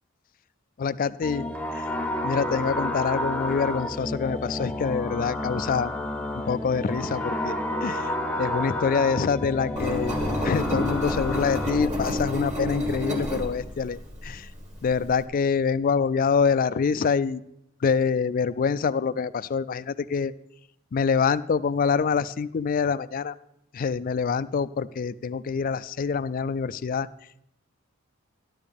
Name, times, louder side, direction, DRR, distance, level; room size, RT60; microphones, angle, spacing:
voice 1, 0.8-1.5 1.7-1.9 2.2-5.9 6.5-8.1 8.4-10.2 10.4-14.5 14.8-17.4 17.8-20.3 20.9-23.3 23.7-27.1, left 5 dB, 40° left, 16 dB, 0.3 m, -25 dB
sound 1, 1.2-11.9, left 1 dB, 5° left, 0.6 m, -30 dB
Engine, 9.8-15.2, left 1 dB, 35° right, 2.0 m, -30 dB
13.5 x 11.5 x 3.5 m, 0.81 s
head